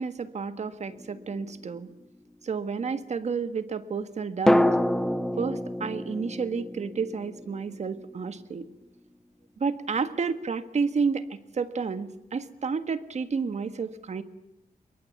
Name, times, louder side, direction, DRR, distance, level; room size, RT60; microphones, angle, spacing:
voice 1, 0.0-1.9 2.4-4.7 5.4-8.7 9.6-14.2, right 5 dB, 50° right, 11 dB, 1.6 m, -31 dB
sound 1, 0.9-2.0 4.5-8.4 8.7-8.8, left 1 dB, 5° left, 0.9 m, -27 dB
27.0 x 23.0 x 8.2 m, 0.86 s
wide cardioid pair, 170°, 15 cm